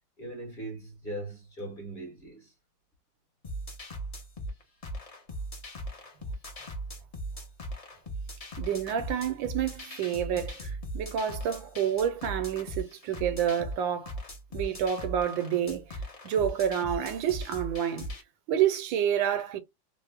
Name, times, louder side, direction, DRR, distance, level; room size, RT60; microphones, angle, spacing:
voice 1, 0.2-2.5, right 1 dB, 35° left, 1.0 m, -40 dB
sound 1, 3.4-18.2, right 1 dB, 65° left, 0.3 m, -39 dB
voice 2, 8.6-14.1 14.5-18.2 18.5-19.6, right 9 dB, 85° right, 1.4 m, -29 dB
3.3 x 2.0 x 3.3 m
omnidirectional pair, 2.1 m